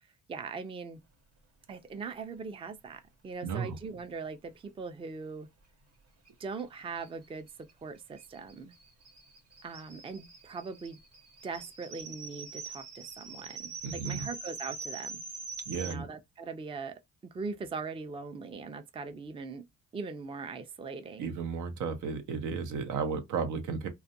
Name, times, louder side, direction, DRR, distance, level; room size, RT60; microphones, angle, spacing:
voice 1, 0.3-1.0 1.7-5.5 6.4-7.5 7.8-8.7 9.6-11.0 11.4-15.2 15.8-19.6 19.9-21.3, right 4 dB, 20° right, 0.4 m, -40 dB
voice 2, 3.4-3.8 13.8-14.3 15.7-16.1 21.2-23.9, right 5 dB, 80° right, 0.7 m, -34 dB
sound 1, 6.3-6.4 6.6-6.7 7.0-15.9, right 4 dB, 55° right, 0.9 m, -44 dB
2.4 x 2.2 x 2.6 m
cardioid pair, 90°, 30 cm